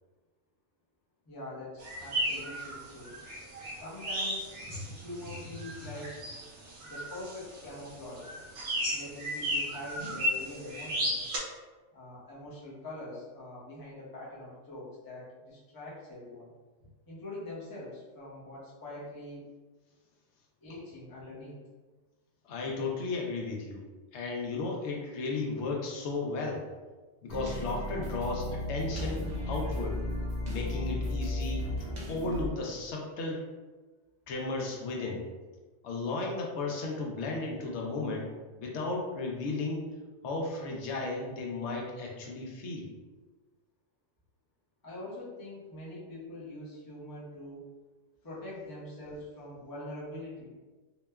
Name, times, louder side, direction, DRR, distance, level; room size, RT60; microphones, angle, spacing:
voice 1, 1.3-3.1 3.7-6.3 6.8-8.4 8.9-11.3 11.9-16.5 16.8-19.4 20.6-21.6 44.8-47.6 48.2-50.5, left 1 dB, 25° left, -7 dB, 0.5 m, -43 dB
sound 1, 1.8-11.4, equal, 75° right, 0.9 m, -35 dB
voice 2, 22.4-23.9 24.1-26.7 27.2-30.0 30.5-33.4 34.3-35.2 35.8-39.9 40.2-42.9, left 3 dB, 70° left, -1 dB, 0.8 m, -34 dB
sound 2, 27.3-32.5, left 1 dB, 50° right, 0.5 m, -34 dB
2.9 x 2.1 x 2.2 m, 1.3 s
omnidirectional pair, 1.3 m